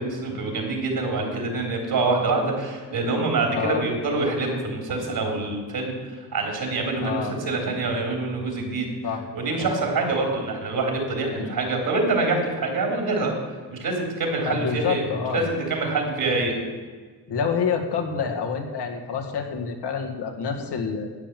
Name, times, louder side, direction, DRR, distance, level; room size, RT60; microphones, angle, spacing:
voice 1, 0.0-8.9 9.3-13.3 13.7-15.1 15.3-16.6, right 3 dB, 65° right, 2 dB, 3.6 m, -25 dB
voice 2, 3.5-3.9 7.0-7.4 9.0-9.2 9.6-9.7 11.4-11.6 14.4-15.5 17.3-21.1, left 6 dB, 90° left, 3 dB, 2.0 m, -27 dB
12.0 x 9.2 x 7.6 m, 1.5 s
cardioid pair, 115°, 39 cm